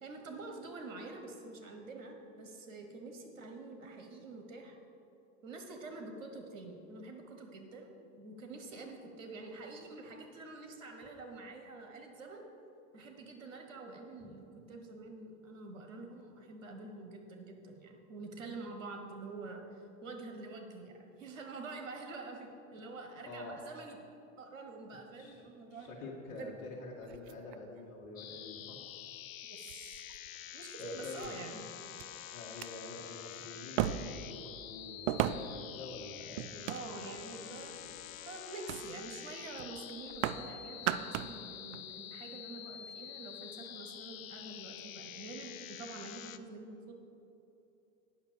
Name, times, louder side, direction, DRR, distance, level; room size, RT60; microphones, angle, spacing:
voice 1, 0.0-4.8 5.4-7.9 8.2-12.5 12.9-24.0 24.4-25.9 26.4-26.6 29.4-30.0 30.5-31.6 36.7-37.9 38.3-46.9, right 3 dB, 80° right, 3 dB, 1.3 m, -47 dB
voice 2, 23.2-23.6 25.2-28.8 30.4-31.4 32.3-36.8, left 3 dB, 50° left, -3 dB, 1.6 m, -47 dB
sound 1, 27.0-28.1 28.9-29.0 29.7-30.3 31.2-31.3 32.0-32.1 32.5-32.7 33.8-34.3 35.1-35.7 36.4-37.2 37.8-38.1 38.7-38.9 39.1-39.3 39.6-40.5 40.7-41.4 41.7-41.8, right 11 dB, 55° right, 0.5 m, -36 dB
sound 2, 28.2-46.4, left 11 dB, 85° left, 0.5 m, -47 dB
9.4 x 5.8 x 6.4 m, 2.8 s
hypercardioid pair, 90°, 39 cm